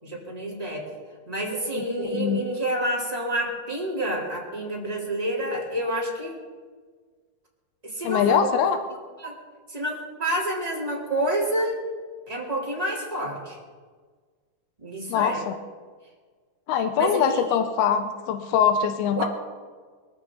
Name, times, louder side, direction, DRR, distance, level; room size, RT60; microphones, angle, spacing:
voice 1, 0.0-0.9 1.3-6.4 7.8-8.4 9.2-9.3 9.7-11.8 12.3-13.6 14.8-15.4 16.9-17.4 19.1-19.3, right 1 dB, 10° right, -4 dB, 3.4 m, -28 dB
voice 2, 1.7-2.4 8.0-8.8 15.1-15.5 16.7-19.3, left 8 dB, 90° left, 8 dB, 2.8 m, -23 dB
24.0 x 13.5 x 4.0 m, 1.5 s
omnidirectional pair, 4.3 m